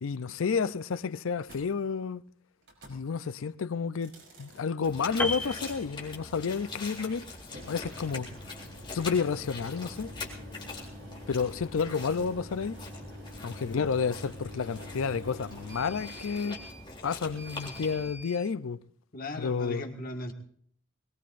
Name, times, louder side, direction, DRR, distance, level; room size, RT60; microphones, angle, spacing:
voice 1, 0.0-2.2 2.9-4.1 4.4-7.3 7.7-8.3 8.9-10.1 11.3-12.8 13.4-16.6 17.0-18.8 19.4-19.8, left 5 dB, 90° left, 0.5 m, -30 dB
sound 1, 1.4-1.6 2.6-3.0 3.9-4.6 5.1-5.8 7.4-18.4, equal, 65° right, 5.6 m, -47 dB
sound 2, 4.8-18.1, left 3 dB, 25° left, 3.6 m, -43 dB
Piano, 5.2-6.6 6.9-7.2, left 2 dB, 10° left, 0.8 m, -34 dB
voice 2, 19.1-20.3, left 1 dB, 45° left, 1.7 m, -37 dB
22.0 x 20.5 x 2.5 m
head